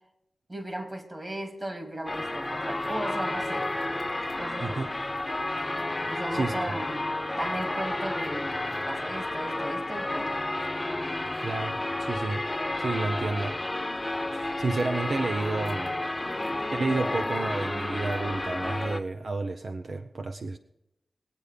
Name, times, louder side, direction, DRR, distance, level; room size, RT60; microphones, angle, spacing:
voice 1, 0.5-3.7 4.4-5.0 6.1-7.1 7.4-10.4, right 1 dB, 30° right, 4 dB, 3.2 m, -36 dB
sound 1, 2.1-19.0, left 2 dB, 25° left, 0.9 m, -31 dB
voice 2, 11.4-12.5 12.8-13.6 14.3-15.9 16.7-20.6, right 3 dB, 70° right, 6 dB, 0.7 m, -30 dB
22.0 x 8.5 x 5.1 m, 0.86 s
cardioid pair, 50°, 0 cm